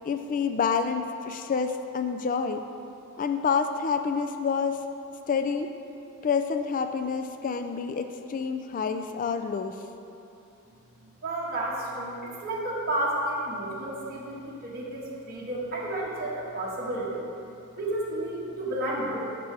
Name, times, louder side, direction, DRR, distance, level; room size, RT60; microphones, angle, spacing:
voice 1, 0.0-2.6 3.2-4.8 5.3-5.7 6.2-9.8, left 5 dB, 40° left, 7 dB, 0.3 m, -28 dB
voice 2, 11.2-17.2 17.8-19.2, right 1 dB, 45° right, -6 dB, 1.5 m, -31 dB
12.0 x 6.7 x 3.3 m, 2.7 s
head